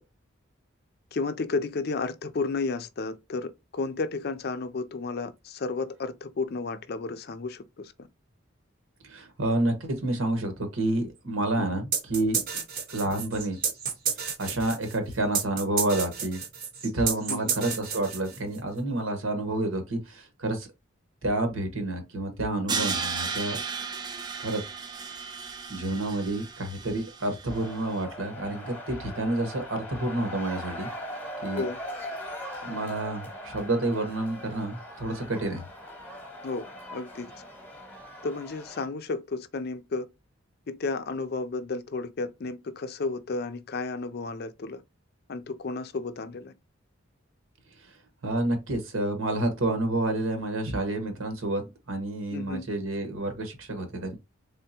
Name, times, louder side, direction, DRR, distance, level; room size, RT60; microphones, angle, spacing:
voice 1, 1.1-7.9 11.6-11.7 17.3-17.6 31.5-31.8 36.4-37.3 38.2-40.1 40.7-44.8 45.3-46.5 52.3-52.7, left 3 dB, 50° left, 0.4 m, -32 dB
voice 2, 9.0-12.4 12.9-13.6 14.4-16.4 16.8-20.7 21.2-23.6 24.4-24.6 25.0-25.2 25.7-30.9 31.4-31.6 32.6-35.6 48.2-51.6 51.9-54.2, right 1 dB, 85° right, 1.2 m, -29 dB
sound 1, 11.9-18.6, right 7 dB, 45° right, 0.8 m, -31 dB
Crash cymbal, 22.7-27.7, right 5 dB, 20° right, 0.3 m, -34 dB
sound 2, 27.5-38.9, equal, 10° left, 0.9 m, -40 dB
3.6 x 3.4 x 2.8 m
head